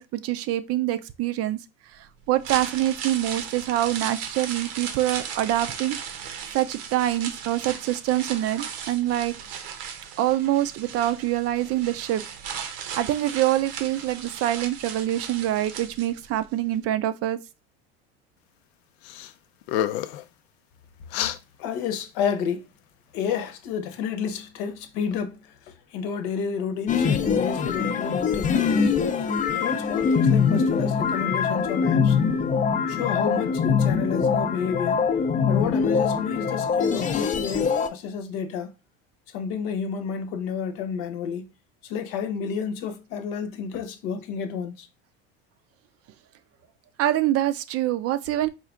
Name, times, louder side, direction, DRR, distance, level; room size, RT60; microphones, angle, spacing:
voice 1, 0.0-1.6 2.3-6.0 6.5-9.3 10.2-12.2 13.0-17.4 47.0-48.5, right 13 dB, 50° right, 0.5 m, -25 dB
sound 1, 2.2-16.4 16.7-16.8, right 7 dB, 75° right, 0.8 m, -36 dB
sound 2, 19.0-19.3 19.6-20.2 21.1-21.4, left 11 dB, 90° left, 0.5 m, -28 dB
voice 2, 21.6-22.7 23.1-25.4 25.9-29.0 29.6-32.2 32.9-35.1 35.5-38.7 39.3-41.5 41.8-44.9, left 6 dB, 70° left, 0.9 m, -30 dB
sound 3, 26.9-37.9, left 6 dB, 25° left, 0.4 m, -23 dB
4.4 x 2.4 x 3.6 m
supercardioid pair, 105°, 31 cm